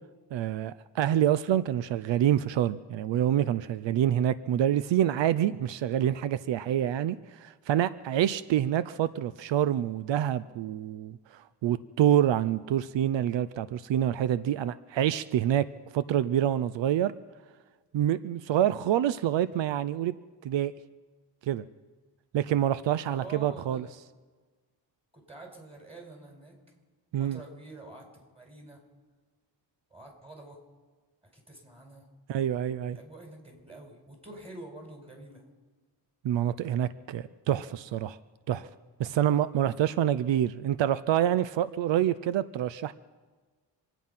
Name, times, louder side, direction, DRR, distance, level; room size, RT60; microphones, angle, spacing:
voice 1, 0.3-15.7 15.9-17.1 17.9-20.1 20.4-20.7 21.5-21.6 22.3-23.8 27.1-27.4 32.3-33.0 36.2-38.2 38.5-38.7 39.0-42.9, right 11 dB, 85° right, 15 dB, 0.6 m, -27 dB
voice 2, 23.0-23.9 25.1-26.6 27.2-28.8 29.9-30.6 31.2-32.1 32.8-35.4, right 2 dB, 15° right, 1 dB, 4.9 m, -47 dB
26.5 x 9.2 x 5.6 m, 1.4 s
cardioid pair, 85°, 43 cm